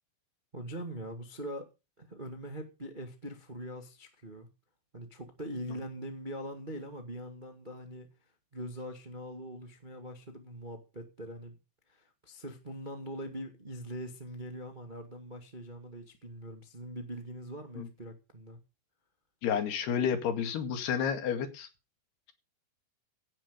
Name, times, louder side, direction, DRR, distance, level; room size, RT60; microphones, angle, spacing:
voice 1, 0.5-1.7 2.0-4.5 4.9-8.1 8.5-11.6 11.9-18.6, equal, 25° right, 1.1 m, -42 dB
voice 2, 19.4-21.7, left 7 dB, 80° left, 4.1 m, -30 dB
17.0 x 8.9 x 5.2 m
omnidirectional pair, 4.6 m